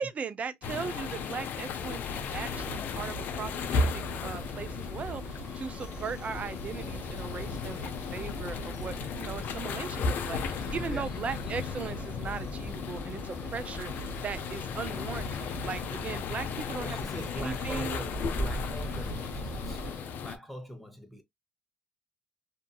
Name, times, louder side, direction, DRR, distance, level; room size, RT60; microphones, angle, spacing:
voice 1, 0.0-18.0, right 6 dB, 40° right, 0.5 m, -38 dB
sound 1, 0.6-20.4, left 4 dB, 60° left, 0.5 m, -35 dB
sound 2, 2.1-20.0, right 2 dB, 20° right, 1.5 m, -43 dB
voice 2, 10.7-11.1 16.7-21.2, equal, ahead, 0.9 m, -42 dB
2.6 x 2.6 x 2.2 m
supercardioid pair, 80°, 4 cm